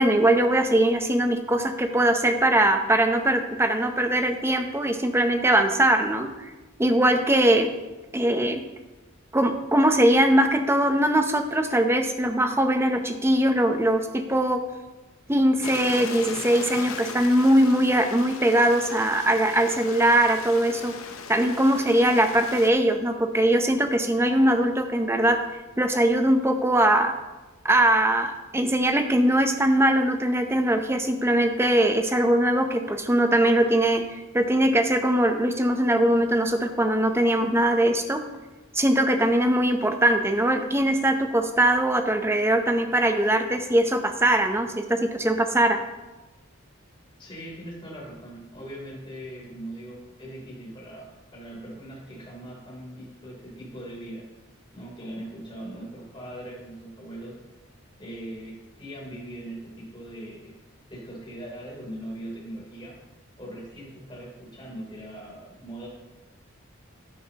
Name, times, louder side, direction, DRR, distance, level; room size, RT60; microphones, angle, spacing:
voice 1, 0.0-6.4 6.8-7.7 8.1-8.6 9.3-14.6 15.3-20.9 21.3-25.4 25.8-27.1 27.6-38.2 38.7-45.8, right 1 dB, 10° right, 6 dB, 0.7 m, -21 dB
Stream, 15.6-22.7, left 5 dB, 85° left, 0.8 m, -38 dB
voice 2, 47.2-54.2 54.7-57.4 58.0-60.6 60.9-63.0 63.4-65.9, right 1 dB, 25° left, -4 dB, 3.3 m, -40 dB
11.5 x 9.5 x 2.9 m, 1.1 s
head